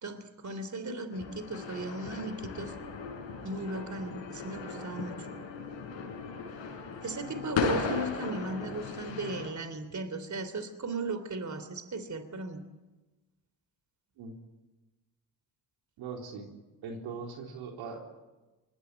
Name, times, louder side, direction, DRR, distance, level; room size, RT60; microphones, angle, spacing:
voice 1, 0.0-2.7 3.4-5.3 7.0-12.6, right 2 dB, 40° right, 11 dB, 3.2 m, -36 dB
sound 1, 1.1-9.5, left 5 dB, 75° left, 6.2 m, -37 dB
voice 2, 16.0-16.5 16.8-18.0, right 5 dB, 80° right, 2 dB, 3.8 m, -40 dB
25.0 x 20.5 x 9.2 m, 1.1 s
supercardioid pair, 55°, 46 cm